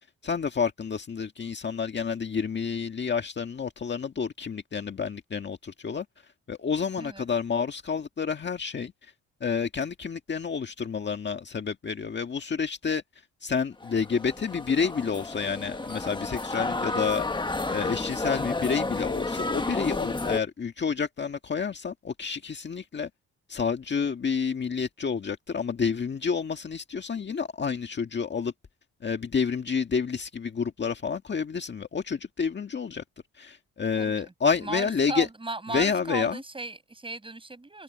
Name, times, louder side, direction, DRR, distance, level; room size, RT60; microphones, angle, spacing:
voice 1, 0.2-6.0 6.5-9.1 9.4-13.0 13.4-17.2 17.7-23.1 23.5-28.5 29.0-33.0 33.4-35.3 35.7-36.4, left 6 dB, 35° left, 1.7 m, -29 dB
sound 1, 13.8-20.4, left 2 dB, 15° left, 1.6 m, -31 dB
voice 2, 34.0-34.3 34.6-37.8, right 2 dB, 15° right, 7.9 m, -36 dB
cardioid pair, 90°, 30 cm